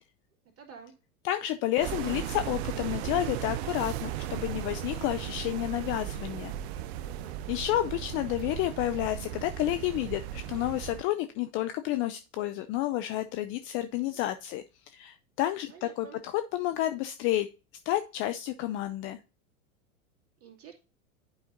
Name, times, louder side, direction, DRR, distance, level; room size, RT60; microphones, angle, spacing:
voice 1, 0.6-0.9 7.0-7.4 15.7-16.2 20.4-20.7, right 7 dB, 30° right, 3 dB, 2.2 m, -49 dB
voice 2, 1.2-6.5 7.5-17.5 17.9-19.2, left 14 dB, 30° left, 9 dB, 0.4 m, -30 dB
sound 1, 1.8-11.0, right 12 dB, 50° right, 0.5 m, -36 dB
10.5 x 4.8 x 2.6 m, 0.32 s
hypercardioid pair, 95°, 43 cm